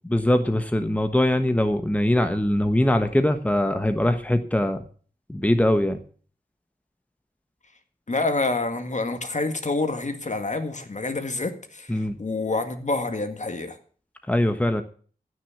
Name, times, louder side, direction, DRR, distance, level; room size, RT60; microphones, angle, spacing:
voice 1, 0.0-4.8 5.3-6.0 11.9-12.2 14.3-14.8, left 1 dB, 10° left, 7 dB, 1.3 m, -22 dB
voice 2, 8.1-13.8, left 3 dB, 50° left, 7 dB, 2.0 m, -27 dB
15.0 x 6.5 x 7.3 m, 0.43 s
cardioid pair, 50°, 16 cm